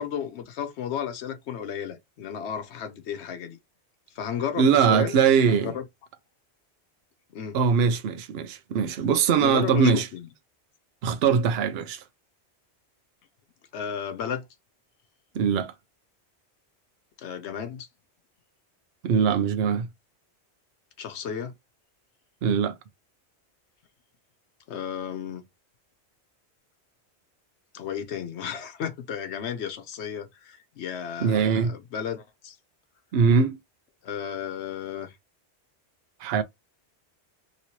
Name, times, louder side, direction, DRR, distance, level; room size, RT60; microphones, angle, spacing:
voice 1, 0.0-3.6 4.2-5.2 5.5-5.8 7.3-7.6 9.4-10.2 13.7-14.4 17.2-17.9 21.0-21.5 24.7-25.4 27.7-32.6 34.0-35.1, left 8 dB, 80° left, 0.9 m, -33 dB
voice 2, 4.6-5.7 7.5-10.1 11.0-12.0 15.3-15.7 19.0-19.9 22.4-22.8 31.2-31.7 33.1-33.6 36.2-36.4, right 6 dB, 70° right, 0.8 m, -22 dB
3.0 x 2.9 x 2.8 m
omnidirectional pair, 1.1 m